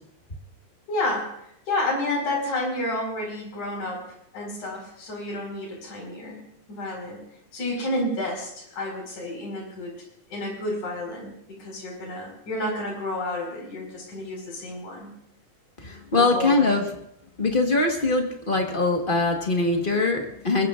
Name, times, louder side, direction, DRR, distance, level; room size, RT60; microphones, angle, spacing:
voice 1, 0.9-4.0 4.3-6.4 6.7-7.2 7.5-9.9 10.3-11.3 11.6-15.1 16.2-16.8, left 1 dB, 85° left, -1 dB, 6.3 m, -30 dB
voice 2, 15.8-16.8 17.4-20.7, left 3 dB, 40° left, 2 dB, 0.7 m, -22 dB
23.0 x 20.5 x 2.5 m, 0.74 s
omnidirectional pair, 3.4 m